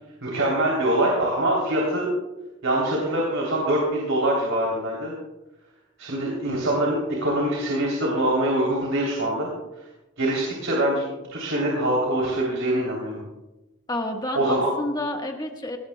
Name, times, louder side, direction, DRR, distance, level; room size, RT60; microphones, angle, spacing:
voice 1, 0.2-2.1 2.6-5.1 6.0-9.5 10.2-13.2 14.3-14.6, right 1 dB, 80° right, -3 dB, 3.3 m, -24 dB
voice 2, 13.9-15.8, left 1 dB, 20° left, 3 dB, 1.4 m, -29 dB
20.0 x 17.5 x 2.3 m, 1.0 s
head